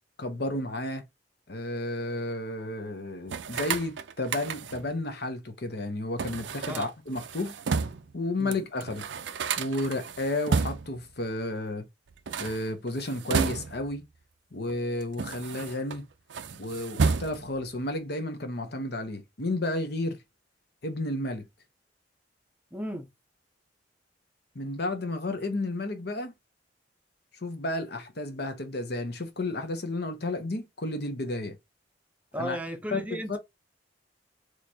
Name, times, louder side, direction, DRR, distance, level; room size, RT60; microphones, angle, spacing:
voice 1, 0.2-1.0 1.5-7.5 8.1-9.1 9.6-11.9 12.4-14.0 14.5-16.1 16.6-20.2 20.8-21.5 24.5-26.3 27.4-31.6 32.4-32.6 32.9-33.0 33.3-33.4, left 2 dB, 60° left, 1.0 m, -32 dB
sound 1, 3.3-4.9 6.2-8.1 8.5-8.6 8.8-11.0 12.1-14.0 14.7-16.0 16.3-17.6, right 5 dB, 75° right, 0.5 m, -31 dB
voice 2, 22.7-23.1 32.3-33.4, equal, 10° right, 0.7 m, -35 dB
3.9 x 3.2 x 2.7 m
head